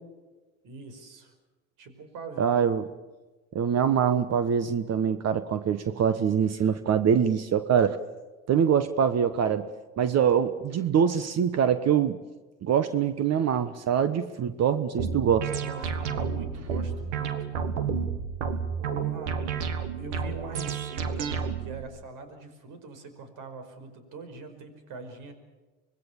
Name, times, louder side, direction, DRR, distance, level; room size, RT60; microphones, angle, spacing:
voice 1, 0.6-1.3 1.8-2.6 15.6-17.7 18.8-19.4 19.9-25.3, right 3 dB, 65° right, 9 dB, 5.2 m, -43 dB
voice 2, 2.4-2.8 3.5-8.0 8.5-9.7 10.0-12.2 12.6-15.5, right 8 dB, 45° right, 12 dB, 1.3 m, -24 dB
sound 1, 15.0-21.8, right 6 dB, 85° right, 1.9 m, -31 dB
26.0 x 21.0 x 7.2 m, 1.2 s
hypercardioid pair, 75°, 35 cm